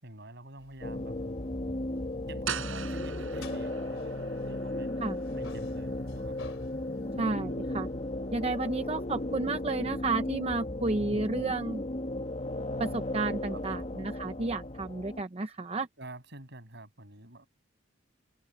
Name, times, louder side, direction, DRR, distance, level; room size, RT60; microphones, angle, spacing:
voice 1, 0.0-1.2 2.3-4.9 5.3-6.5 13.5-14.0 16.0-17.5, right 2 dB, 60° right, 7.4 m, -48 dB
sound 1, 0.6-4.8 5.1-7.2, left 4 dB, 90° left, 3.0 m, -55 dB
sound 2, 0.8-15.2, left 1 dB, 35° left, 1.6 m, -35 dB
sound 3, 2.5-8.1, right 8 dB, 90° right, 5.5 m, -43 dB
voice 2, 7.2-7.9 8.3-11.8 12.8-15.9, right 3 dB, 30° right, 0.7 m, -32 dB
head